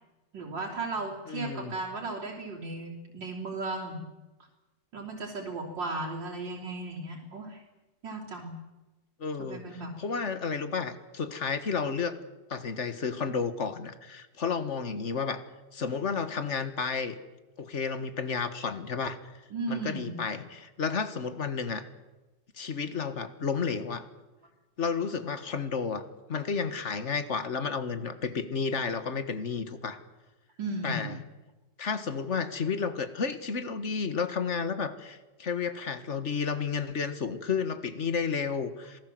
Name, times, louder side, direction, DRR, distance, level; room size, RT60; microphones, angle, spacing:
voice 1, 0.3-4.0 4.9-7.6 8.0-8.5 9.4-9.9 19.5-20.1 30.6-31.1, right 2 dB, 75° right, -3 dB, 4.0 m, -35 dB
voice 2, 1.3-1.7 9.2-12.2 12.5-15.4 15.7-17.2 17.6-19.2 19.7-21.9 22.5-24.1 24.8-30.0 30.8-31.2 31.8-39.0, left 5 dB, 40° left, 11 dB, 1.8 m, -32 dB
26.5 x 18.5 x 7.7 m, 1.1 s
omnidirectional pair, 2.0 m